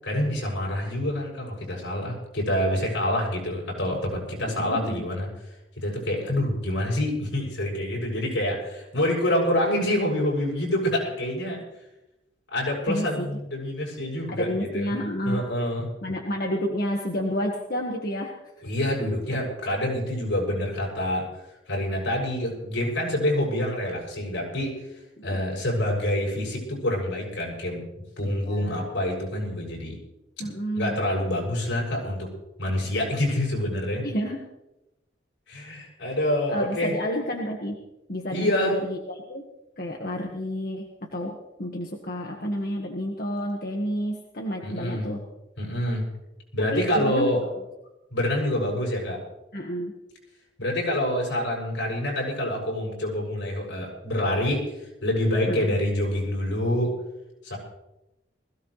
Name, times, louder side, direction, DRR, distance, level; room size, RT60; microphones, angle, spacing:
voice 1, 0.0-5.3 5.8-11.6 12.5-14.9 15.3-15.9 18.6-21.3 21.7-24.9 25.2-27.8 28.2-30.0 30.4-30.5 30.8-32.3 32.6-34.0 35.5-37.0 38.3-38.8 44.6-45.1 45.6-46.1 46.5-47.4 48.1-49.2 50.6-56.9 57.4-57.6, left 1 dB, 85° left, -2 dB, 6.9 m, -26 dB
voice 2, 4.5-5.0 12.9-13.3 14.3-15.4 16.0-18.4 25.2-25.4 28.5-28.8 30.4-31.0 34.0-34.4 36.5-37.8 38.1-39.4 39.8-45.2 46.7-47.5 49.5-49.9 55.5-55.8, equal, 50° left, 0 dB, 1.6 m, -30 dB
21.0 x 16.5 x 3.3 m, 0.95 s
head